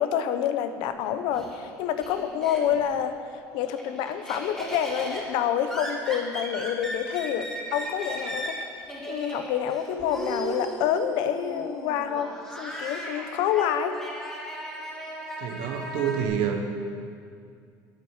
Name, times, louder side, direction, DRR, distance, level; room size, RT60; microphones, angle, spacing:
voice 1, 0.0-3.1 3.5-8.6 9.1-12.3 12.6-13.9, left 9 dB, 80° left, 9 dB, 0.9 m, -27 dB
Laughter, 0.9-3.0 3.4-16.3, equal, 5° left, 2.6 m, -37 dB
voice 2, 15.4-16.8, right 7 dB, 85° right, 4 dB, 1.4 m, -28 dB
11.0 x 8.9 x 6.5 m, 2.3 s
cardioid pair, 135°, 8 cm